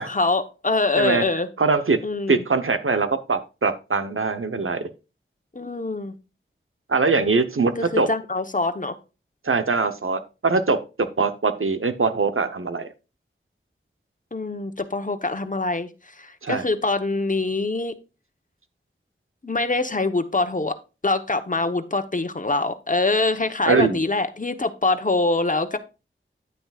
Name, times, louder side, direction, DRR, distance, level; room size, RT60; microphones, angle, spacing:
voice 1, 0.0-1.5 2.0-2.4 5.5-6.1 7.8-9.0 14.3-17.9 19.4-20.8 21.0-25.8, left 3 dB, 40° left, 8 dB, 1.1 m, -24 dB
voice 2, 0.9-1.3 1.6-2.0 2.3-4.9 6.9-8.1 9.4-12.9 16.4-16.6 23.6-24.0, right 4 dB, 90° right, 10 dB, 1.0 m, -22 dB
9.8 x 9.2 x 2.4 m, 0.30 s
wide cardioid pair, 50°, 21 cm